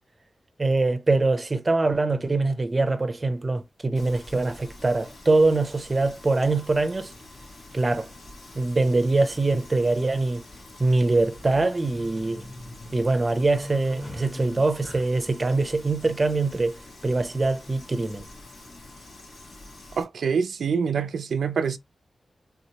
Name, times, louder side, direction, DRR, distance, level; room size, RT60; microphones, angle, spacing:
voice 1, 0.6-7.1 7.7-8.1 8.6-10.4 10.8-12.4 12.9-16.8 17.0-18.3, right 3 dB, 25° right, 0.5 m, -23 dB
sound 1, 2.8-2.9 4.4-4.5 5.9-6.0 6.2-6.3 8.2-8.3 8.5-8.6 9.3-9.8 11.2-15.4, equal, 10° left, 0.9 m, -40 dB
Frying (food), 3.9-20.0, left 2 dB, 75° left, 2.6 m, -46 dB
voice 2, 20.0-21.8, right 6 dB, 85° right, 0.4 m, -25 dB
3.5 x 3.0 x 2.8 m
wide cardioid pair, 155°, 0 cm